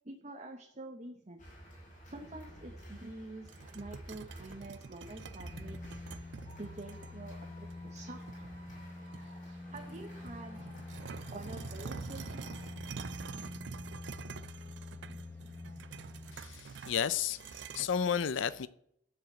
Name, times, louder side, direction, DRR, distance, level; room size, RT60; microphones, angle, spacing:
voice 1, 0.0-1.4 2.1-6.0 6.6-8.6 9.7-10.7 11.3-12.5 15.0-15.2, right 2 dB, 35° right, 1.1 m, -47 dB
Chants cheers and boos at a baseball game, 1.4-12.7, equal, 40° left, 5.6 m, -53 dB
sound 1, 3.5-7.1 7.7-7.8 8.3-9.4 9.7-17.9, right 5 dB, 65° right, 0.5 m, -47 dB
sound 2, 5.0-16.6 17.0-17.1, left 2 dB, 15° left, 1.4 m, -47 dB
voice 2, 16.3-18.7, left 7 dB, 75° left, 0.5 m, -33 dB
12.5 x 4.9 x 7.5 m
head